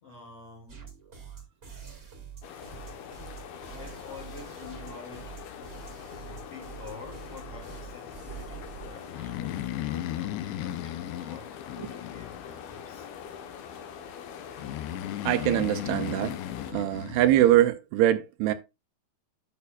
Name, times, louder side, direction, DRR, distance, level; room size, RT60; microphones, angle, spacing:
voice 1, 0.0-0.9 2.5-5.5 6.0-13.1, left 4 dB, 55° left, 1.9 m, -48 dB
sound 1, 0.7-9.1, right 7 dB, 25° right, 1.2 m, -45 dB
sound 2, 2.4-16.7, left 8 dB, 75° left, 2.8 m, -43 dB
Breathing, 9.1-12.8 14.6-17.7, left 13 dB, 90° left, 2.8 m, -35 dB
voice 2, 15.3-16.4 16.7-18.5, right 13 dB, 80° right, 2.6 m, -23 dB
11.0 x 6.1 x 2.4 m
omnidirectional pair, 4.7 m